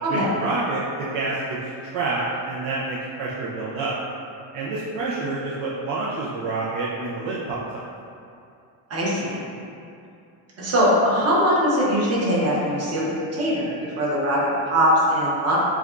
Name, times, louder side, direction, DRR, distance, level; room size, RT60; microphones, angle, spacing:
voice 1, 0.1-3.9 4.5-7.8, right 3 dB, 60° right, -6 dB, 0.6 m, -28 dB
voice 2, 8.9-9.4 10.6-15.6, equal, 30° right, -6 dB, 1.0 m, -21 dB
6.8 x 2.4 x 2.5 m, 2.5 s
cardioid pair, 140°, 49 cm